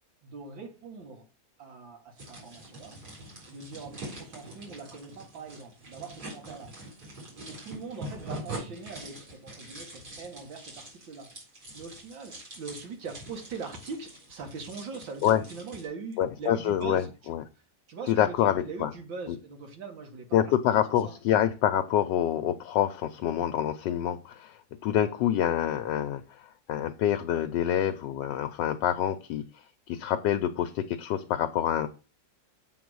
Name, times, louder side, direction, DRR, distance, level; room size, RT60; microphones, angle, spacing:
voice 1, 0.2-1.2 1.6-3.0 3.5-6.9 7.5-11.3 11.7-17.3 17.9-20.4 20.7-20.8 21.0-21.2, right 4 dB, 80° right, 2.2 m, -42 dB
sound 1, 2.2-15.9, right 1 dB, 55° right, 4.6 m, -44 dB
voice 2, 16.2-17.4 18.1-18.9 20.3-24.6 24.8-26.2 26.7-29.4 29.9-31.9, left 10 dB, 75° left, 1.2 m, -26 dB
7.9 x 4.1 x 6.2 m
omnidirectional pair, 2.0 m